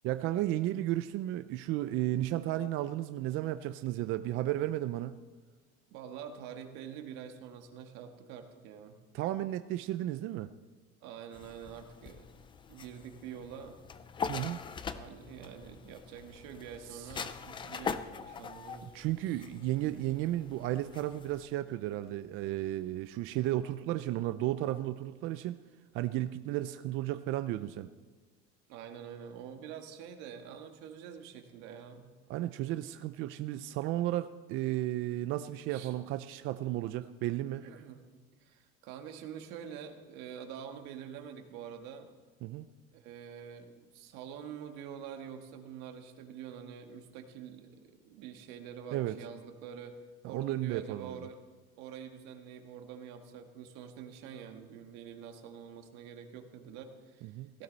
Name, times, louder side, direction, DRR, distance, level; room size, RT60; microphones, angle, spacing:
voice 1, 0.0-5.2 9.1-10.5 14.3-14.6 16.9-17.1 18.8-25.6 25.9-27.9 32.3-37.6 42.4-42.6 48.9-49.2 50.2-51.3 57.2-57.5, right 14 dB, 45° right, 11 dB, 0.4 m, -33 dB
voice 2, 5.9-9.0 11.0-12.3 12.7-13.8 14.9-18.9 19.3-19.4 28.7-32.1 35.7-35.9 37.6-38.0 38.4-42.1 42.9-50.0 50.2-51.4 51.8-57.6, right 8 dB, 80° right, 5 dB, 1.8 m, -46 dB
sound 1, 11.3-21.5, left 6 dB, 15° left, 0.4 m, -42 dB
16.5 x 15.5 x 4.0 m, 1.3 s
cardioid pair, 175°, 29 cm